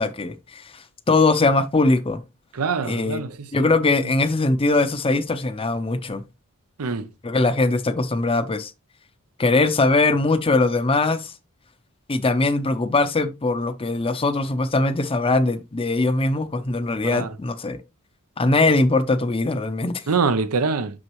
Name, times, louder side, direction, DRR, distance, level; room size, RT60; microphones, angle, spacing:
voice 1, 0.0-2.2 2.8-6.2 7.2-8.7 9.4-11.3 12.1-17.8 18.4-20.0, left 3 dB, 25° left, 0.6 m, -21 dB
voice 2, 2.5-3.4 6.8-7.1 17.0-17.3 20.1-21.0, right 4 dB, 80° right, 0.7 m, -24 dB
6.4 x 6.1 x 3.1 m
head